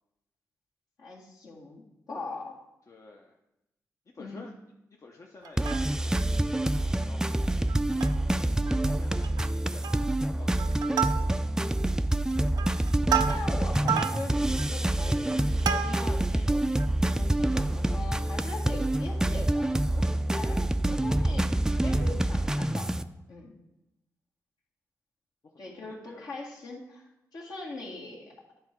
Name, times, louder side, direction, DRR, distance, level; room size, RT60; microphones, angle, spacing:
voice 1, 1.0-1.8 2.1-2.6 4.2-4.5 13.3-16.7 17.1-21.5 21.8-22.9 23.3-23.5 25.6-27.0 27.3-28.3, left 3 dB, 70° left, -3 dB, 1.9 m, -41 dB
voice 2, 2.9-3.3 4.1-4.5 5.0-7.3 7.9-11.6 25.8-26.3, left 3 dB, 50° left, 0 dB, 0.7 m, -51 dB
Plucked string instrument, 5.4-6.2 6.7-6.8 7.0-7.2 7.7-8.3 8.7-8.8 9.1-9.5 9.8-10.2 10.6-11.6 12.2-16.3 16.8-16.9, right 8 dB, 85° right, 0.4 m, -32 dB
sound 1, 5.6-23.0, right 1 dB, 10° right, 0.3 m, -27 dB
9.5 x 3.7 x 4.5 m, 0.90 s
cardioid pair, 60°, 7 cm